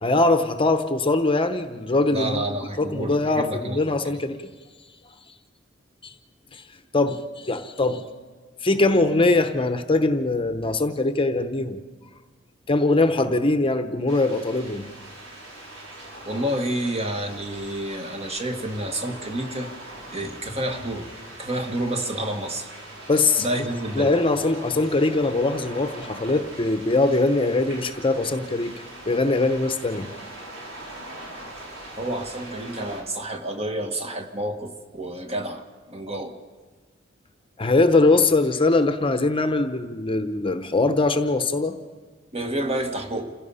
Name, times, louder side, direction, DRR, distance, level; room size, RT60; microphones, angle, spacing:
voice 1, 0.0-2.4 2.8-4.4 6.0-6.1 6.5-6.6 6.9-8.1 8.6-11.8 12.7-14.9 23.1-23.5 24.0-28.8 29.1-30.1 37.6-41.8, left 2 dB, 30° left, 0.9 m, -22 dB
voice 2, 2.1-4.2 16.2-19.7 20.1-21.1 21.4-22.7 23.4-24.1 32.0-36.3 42.3-43.3, right 1 dB, 35° right, 1.5 m, -29 dB
sound 1, 14.1-33.0, right 1 dB, 75° right, 4.9 m, -41 dB
28.0 x 16.5 x 5.6 m
head